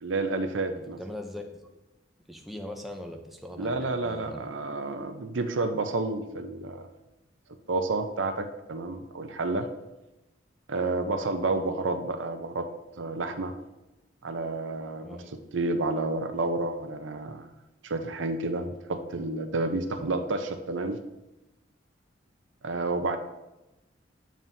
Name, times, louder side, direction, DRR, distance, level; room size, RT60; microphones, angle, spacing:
voice 1, 0.0-1.0 3.6-6.9 7.7-9.7 10.7-12.7 13.0-13.5 14.2-15.2 15.5-17.5 17.8-21.0 22.6-23.2, right 2 dB, 75° right, 7 dB, 0.7 m, -30 dB
voice 2, 1.0-1.5 2.3-3.8 4.0-4.5 15.0-15.3 20.0-20.1, left 1 dB, ahead, 2 dB, 0.6 m, -40 dB
9.2 x 7.2 x 2.7 m, 0.99 s
head